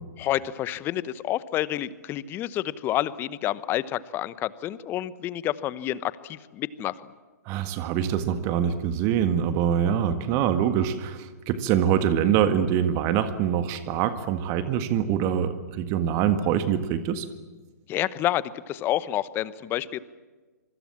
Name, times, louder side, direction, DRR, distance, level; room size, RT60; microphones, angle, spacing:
voice 1, 0.2-6.9 17.9-20.0, left 13 dB, 25° left, 18 dB, 1.0 m, -29 dB
voice 2, 7.5-17.3, right 9 dB, 30° right, 10 dB, 1.8 m, -24 dB
26.5 x 24.5 x 7.4 m, 1.3 s
figure-of-eight pair, 120°, 9 cm